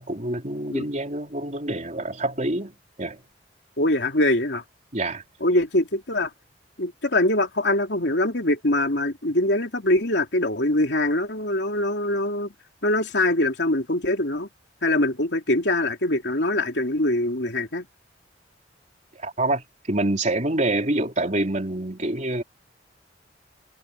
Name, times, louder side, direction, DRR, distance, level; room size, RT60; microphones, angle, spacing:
voice 1, 0.0-2.7 3.0-3.2 4.9-5.2 19.2-22.4, right 2 dB, 40° right, 3.8 m, -26 dB
voice 2, 3.8-4.6 5.4-6.3 6.8-12.5 12.8-14.5 14.8-17.9, left 1 dB, 70° left, 3.3 m, -23 dB
head